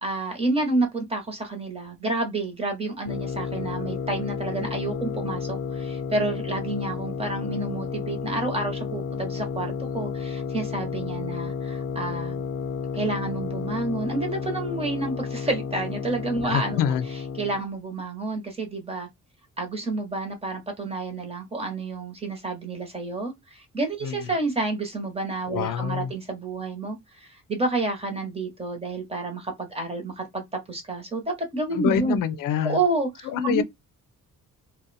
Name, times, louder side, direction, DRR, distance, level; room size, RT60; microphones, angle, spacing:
voice 1, 0.0-12.4 12.9-16.8 17.4-19.1 19.6-32.2 32.6-33.6, right 2 dB, 20° right, 0.9 m, -29 dB
sound 1, 3.1-17.6, left 6 dB, 40° left, 0.5 m, -32 dB
voice 2, 16.4-17.1 24.0-24.4 25.5-26.1 31.7-32.8 33.2-33.6, left 8 dB, 90° left, 0.5 m, -26 dB
2.5 x 2.2 x 3.9 m
cardioid pair, 175°, 32 cm